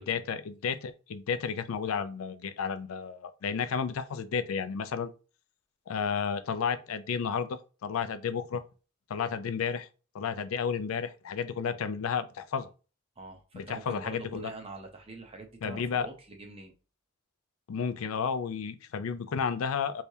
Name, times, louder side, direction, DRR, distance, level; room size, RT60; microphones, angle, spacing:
voice 1, 0.0-5.1 5.9-8.6 9.1-9.9 10.1-12.7 13.5-14.5 15.6-16.1 17.7-20.0, left 6 dB, 90° left, 0.4 m, -32 dB
voice 2, 13.2-16.7, right 2 dB, 30° right, 0.7 m, -45 dB
3.3 x 3.2 x 2.7 m
head